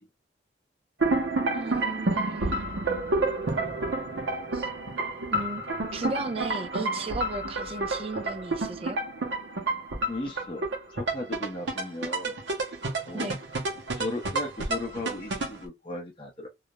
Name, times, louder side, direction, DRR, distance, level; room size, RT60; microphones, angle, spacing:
sound 1, 1.0-15.6, right 2 dB, 65° right, 0.6 m, -30 dB
voice 1, 1.5-2.7 4.5-4.7 5.3-5.6 5.9-9.0 13.1-13.4, right 3 dB, 30° right, 0.3 m, -35 dB
voice 2, 10.1-12.4 13.1-13.4 14.0-16.5, left 2 dB, 25° left, 0.6 m, -36 dB
2.3 x 2.0 x 2.8 m
head